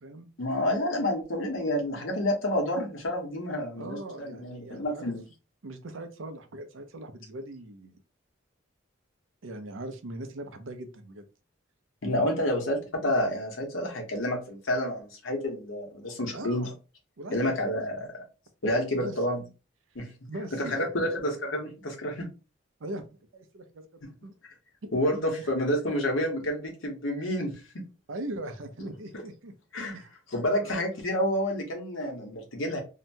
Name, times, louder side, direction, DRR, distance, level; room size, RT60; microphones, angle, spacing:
voice 1, 0.4-5.2 12.0-16.7 17.3-18.1 18.6-19.4 19.9-22.3 24.9-27.5 29.7-30.0 30.3-32.8, left 1 dB, 85° left, 1 dB, 1.0 m, -29 dB
voice 2, 3.8-5.1 5.6-8.0 9.4-11.2 16.3-16.7 17.2-17.6 19.0-19.2 20.3-20.9 22.8-24.3 24.8-25.5 28.1-29.5 29.9-30.1 30.6-30.8, right 1 dB, 85° right, 7 dB, 0.6 m, -40 dB
2.8 x 2.2 x 2.7 m, 0.32 s
head